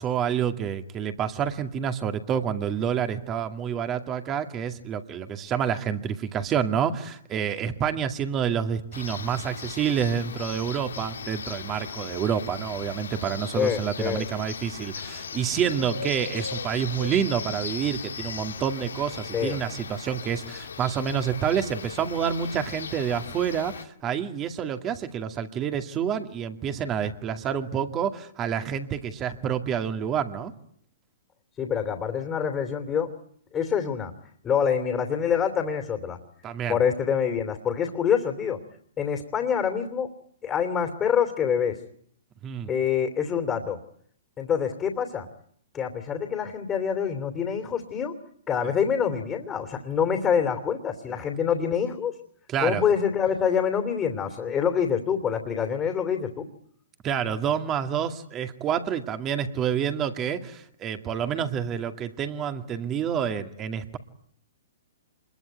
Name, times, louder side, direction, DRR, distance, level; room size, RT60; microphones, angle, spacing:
voice 1, 0.0-30.5 36.4-36.8 42.4-42.7 52.5-52.8 57.0-64.0, right 8 dB, 25° right, 8 dB, 2.3 m, -28 dB
sound 1, 8.9-23.8, left 6 dB, 80° left, 1.9 m, -38 dB
voice 2, 13.5-14.3 19.3-19.6 31.6-33.1 33.5-34.1 34.4-36.2 36.7-38.6 39.0-40.1 40.4-41.8 42.7-43.8 44.4-45.3 45.7-48.2 48.5-52.1 52.6-56.4, left 7 dB, 20° left, 5 dB, 2.9 m, -26 dB
26.5 x 22.0 x 9.3 m, 0.65 s
hypercardioid pair, 125°, 0 cm